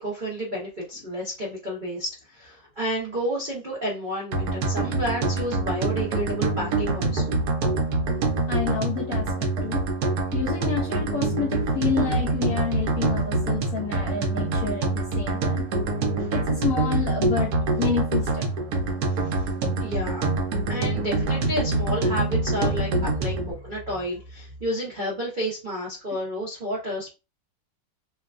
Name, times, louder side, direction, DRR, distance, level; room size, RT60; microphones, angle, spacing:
voice 1, 0.0-7.3 16.2-16.3 19.1-19.5 19.8-20.3 20.7-27.1, equal, 85° right, -5 dB, 0.4 m, -31 dB
sound 1, 4.3-23.5, right 2 dB, 65° right, 1.0 m, -25 dB
voice 2, 8.5-9.3 9.6-9.8 10.3-15.6 16.3-18.5, left 6 dB, 70° left, -1 dB, 0.8 m, -29 dB
3.0 x 2.2 x 2.4 m, 0.30 s
omnidirectional pair, 2.0 m